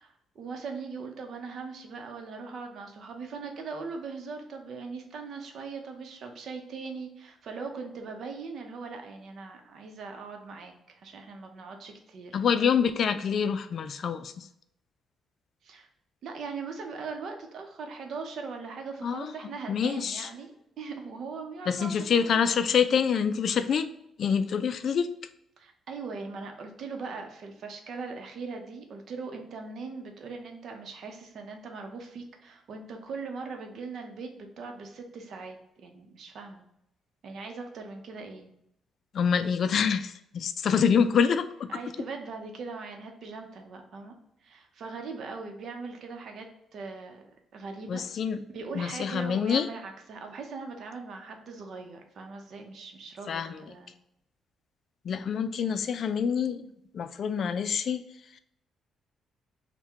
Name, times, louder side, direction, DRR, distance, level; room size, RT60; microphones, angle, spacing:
voice 1, 0.0-12.4 15.6-15.9 16.2-22.3 25.6-36.6 37.2-38.5 41.7-44.2 44.4-46.5 46.7-47.2 47.5-48.0 48.5-53.9, right 4 dB, 65° right, 4 dB, 0.7 m, -40 dB
voice 2, 12.3-14.5 19.0-19.3 19.7-20.3 21.7-23.9 24.2-25.1 39.1-41.7 47.9-48.4 48.7-49.7 53.3-53.7 55.0-56.6 56.9-58.0 58.3-58.4, left 7 dB, 60° left, 11 dB, 0.3 m, -26 dB
3.5 x 2.2 x 4.4 m, 0.76 s
cardioid pair, 90°, 0 cm